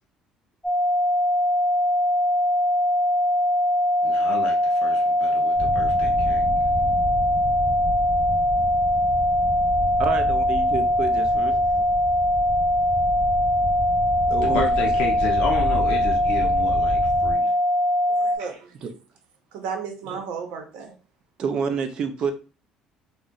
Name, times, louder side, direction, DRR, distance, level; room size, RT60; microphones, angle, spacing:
sound 1, 0.6-18.4, left 1 dB, 5° left, 0.5 m, -21 dB
voice 1, 4.0-6.4 14.4-17.5, left 5 dB, 60° left, 1 dB, 0.5 m, -32 dB
sound 2, 5.5-17.4, equal, 25° right, 1.2 m, -31 dB
voice 2, 10.0-11.5 11.8-11.9 14.3-14.7 18.8-18.9 21.4-22.3, right 6 dB, 45° right, 7 dB, 0.5 m, -28 dB
voice 3, 18.1-18.8 19.5-20.9, right 6 dB, 80° right, 4 dB, 0.8 m, -34 dB
2.5 x 2.1 x 3.7 m, 0.35 s
cardioid pair, 150°, 2 cm